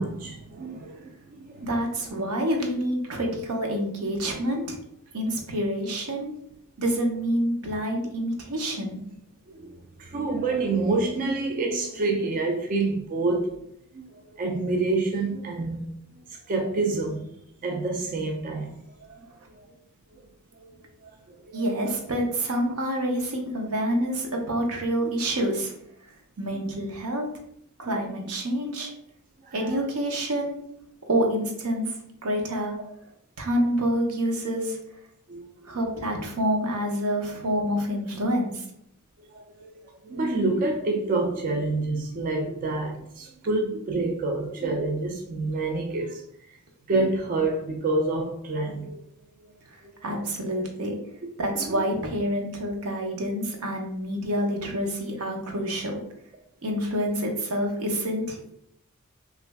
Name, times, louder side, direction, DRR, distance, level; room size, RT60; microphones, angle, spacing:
voice 1, 0.0-1.7 9.5-13.6 13.9-15.9 16.3-17.3 17.6-19.7 20.1-20.2 21.0-21.6 27.8-28.1 29.4-29.8 35.3-35.4 39.3-39.7 40.0-46.2 46.5-46.6 46.9-49.0 51.7-51.8, right 3 dB, 40° right, 0.3 m, -28 dB
voice 2, 1.6-4.8 5.1-6.3 6.8-9.0 21.5-25.7 26.4-27.3 27.8-28.9 29.5-30.6 31.1-31.9 32.2-32.7 33.4-34.8 35.6-38.6 49.7-50.9 51.4-56.0 56.6-58.5, equal, 80° right, 0.8 m, -27 dB
3.0 x 2.5 x 3.3 m
head